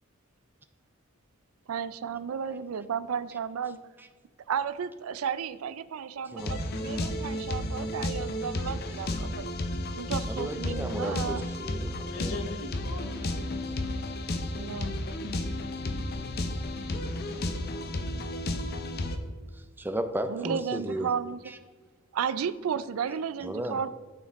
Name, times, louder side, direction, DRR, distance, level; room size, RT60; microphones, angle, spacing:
voice 1, 1.7-3.8 4.5-9.4 9.9-11.4 14.5-15.0 20.3-21.5 22.1-23.9, right 7 dB, 90° right, 15 dB, 0.4 m, -33 dB
sound 1, 6.4-19.2, left 1 dB, 50° left, 0.7 m, -32 dB
voice 2, 10.3-12.3 19.5-21.1 21.5-21.6 23.4-23.8, right 1 dB, 10° right, 8 dB, 0.4 m, -34 dB
voice 3, 12.1-14.0, left 2 dB, 75° left, 6 dB, 0.9 m, -42 dB
12.0 x 4.5 x 3.5 m, 1.4 s
head